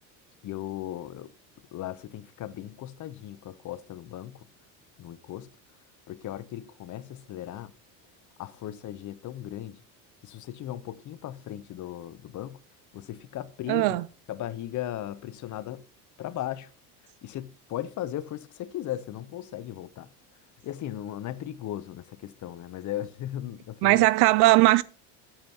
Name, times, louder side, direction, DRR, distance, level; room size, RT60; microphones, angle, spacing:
voice 1, 0.4-1.3 1.7-4.5 5.0-5.5 6.1-7.7 8.4-9.8 10.2-12.6 12.9-14.0 14.3-15.8 16.2-16.7 17.2-20.1 20.6-24.1, left 12 dB, 40° left, 0.7 m, -37 dB
voice 2, 13.7-14.1 23.8-24.8, right 19 dB, 55° right, 0.5 m, -19 dB
8.7 x 7.1 x 2.8 m
supercardioid pair, 95°, 47 cm